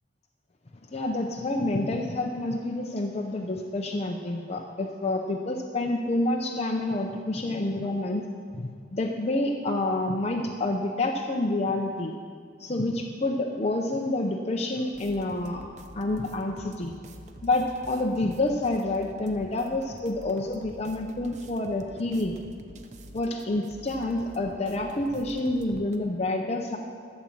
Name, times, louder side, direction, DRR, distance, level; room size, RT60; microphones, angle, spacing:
voice 1, 0.9-8.3 8.5-12.1 12.6-15.7 16.0-16.9 17.4-22.4 23.1-26.8, left 2 dB, 35° left, 1 dB, 0.7 m, -28 dB
sound 1, 14.9-26.0, right 1 dB, 40° right, 0.8 m, -47 dB
13.0 x 7.2 x 7.6 m, 2.2 s
head